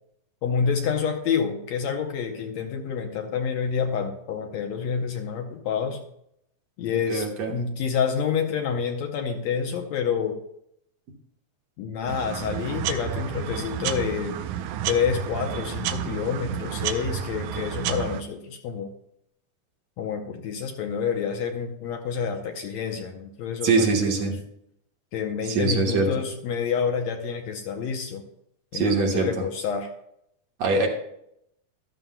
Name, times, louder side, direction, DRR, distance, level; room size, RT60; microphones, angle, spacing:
voice 1, 0.4-6.1 6.8-10.4 11.8-14.4 14.9-18.9 20.0-24.2 25.1-28.3 28.7-29.9, left 6 dB, 70° left, 4 dB, 1.9 m, -28 dB
voice 2, 7.1-7.5 23.6-24.3 25.5-26.1 28.7-29.4 30.6-30.9, right 4 dB, 65° right, 0 dB, 2.4 m, -23 dB
sound 1, 12.1-18.2, right 10 dB, 85° right, 2.2 m, -31 dB
13.5 x 12.5 x 2.2 m, 0.76 s
omnidirectional pair, 3.6 m